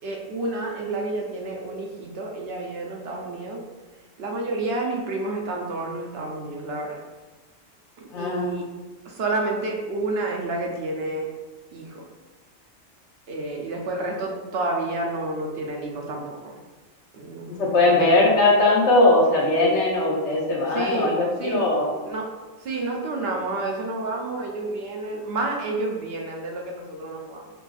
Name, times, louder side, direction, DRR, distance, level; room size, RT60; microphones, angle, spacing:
voice 1, 0.0-3.6 4.2-7.0 8.0-8.7 9.0-11.3 11.7-12.1 13.3-16.6 17.1-18.1 20.7-21.7 22.1-27.5, right 2 dB, 65° right, 0 dB, 0.7 m, -30 dB
voice 2, 8.1-8.5 17.6-21.9, left 2 dB, 60° left, -3 dB, 1.1 m, -19 dB
5.0 x 2.4 x 2.3 m, 1.3 s
omnidirectional pair, 1.4 m